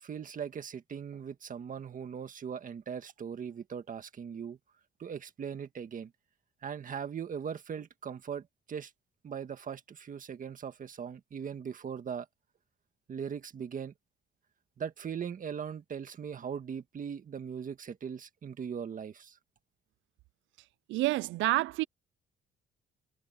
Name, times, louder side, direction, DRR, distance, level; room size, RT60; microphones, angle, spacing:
voice 1, 0.0-4.6 5.0-6.1 6.6-8.9 9.2-12.3 13.1-13.9 14.8-19.4, right 7 dB, 45° right, 1.7 m, -39 dB
voice 2, 20.9-21.8, right 18 dB, 85° right, 0.4 m, -28 dB
cardioid pair, 110°, 19 cm